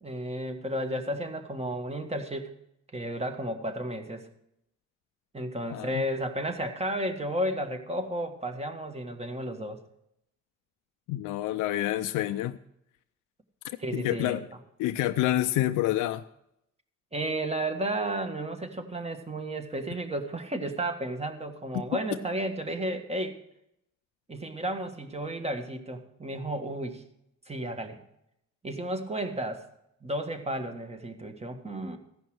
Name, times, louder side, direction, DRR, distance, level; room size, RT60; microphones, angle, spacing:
voice 1, 0.0-2.5 2.9-4.3 5.3-9.8 13.8-14.4 17.1-23.4 24.3-27.0 27.5-28.0 28.6-29.7 30.0-32.0, right 1 dB, 20° right, 6 dB, 1.7 m, -33 dB
voice 2, 5.7-6.0 11.1-12.6 13.9-14.5 14.8-16.2, left 14 dB, 90° left, 8 dB, 0.5 m, -28 dB
15.0 x 5.4 x 7.7 m, 0.79 s
cardioid pair, 90°, 30 cm